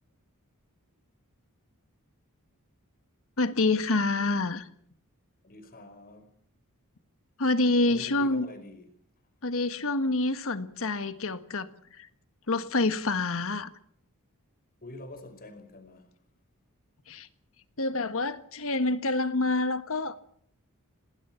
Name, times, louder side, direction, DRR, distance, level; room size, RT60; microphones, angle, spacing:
voice 1, 3.4-4.7 7.4-8.5 9.4-11.7 12.0-12.1 12.5-13.7 17.1-17.3 17.8-20.1, left 2 dB, 65° left, 1.7 m, -27 dB
voice 2, 5.4-6.3 7.9-8.9 14.8-16.1, left 2 dB, 45° left, 5.2 m, -46 dB
28.0 x 19.5 x 5.9 m
head